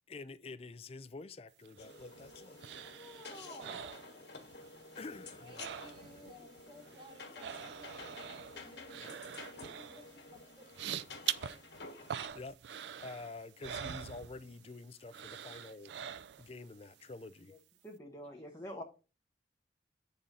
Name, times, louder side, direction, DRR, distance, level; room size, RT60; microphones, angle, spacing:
voice 1, 0.1-2.6 4.9-5.7 6.4-6.5 11.2-11.3 12.0-12.6 13.0-15.9 16.4-17.6, left 3 dB, 35° left, 0.4 m, -48 dB
sound 1, 1.6-4.7 5.0-6.3 6.6-14.7 15.1-16.6 17.0-17.1, right 9 dB, 75° right, 0.4 m, -44 dB
sound 2, 1.8-12.3, left 3 dB, 75° left, 1.5 m, -51 dB
voice 2, 2.8-4.0 17.5-17.6 17.8-18.8, equal, 15° left, 1.0 m, -48 dB
voice 3, 3.4-4.2 5.4-11.2 18.2-18.6, left 1 dB, 25° right, 1.5 m, -58 dB
8.4 x 3.8 x 4.1 m
head